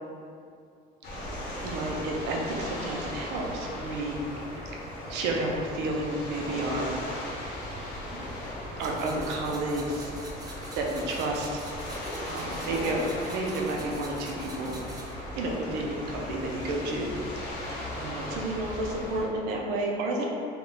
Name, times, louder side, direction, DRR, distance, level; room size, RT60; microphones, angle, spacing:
sound 1, 1.0-19.2, left 1 dB, 70° left, 0.7 m, -37 dB
voice 1, 1.6-4.2 5.1-7.3 8.1-8.3 8.8-10.1 10.7-11.6 12.3-14.8 15.4-17.1 17.9-20.2, right 2 dB, 90° right, 0 dB, 0.5 m, -31 dB
sound 2, 8.8-15.1, right 2 dB, 20° right, 0.3 m, -46 dB
2.2 x 2.1 x 3.8 m, 2.4 s
cardioid pair, 125°, 17 cm